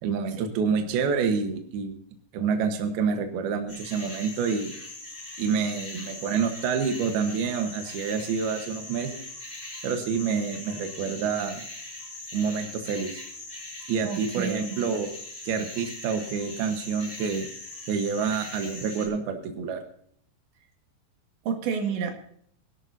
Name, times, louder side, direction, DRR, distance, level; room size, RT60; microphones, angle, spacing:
voice 1, 0.0-2.0 2.3-4.7 5.4-9.2 9.8-11.7 12.3-13.2 13.9-15.1 15.4-17.5 17.9-19.8, right 6 dB, 70° right, 5 dB, 2.9 m, -28 dB
sound 1, 3.7-19.1, left 2 dB, 5° right, 6.9 m, -41 dB
voice 2, 14.0-14.8 21.5-22.1, right 6 dB, 85° right, 3 dB, 4.1 m, -30 dB
23.5 x 12.0 x 2.7 m, 0.64 s
omnidirectional pair, 5.0 m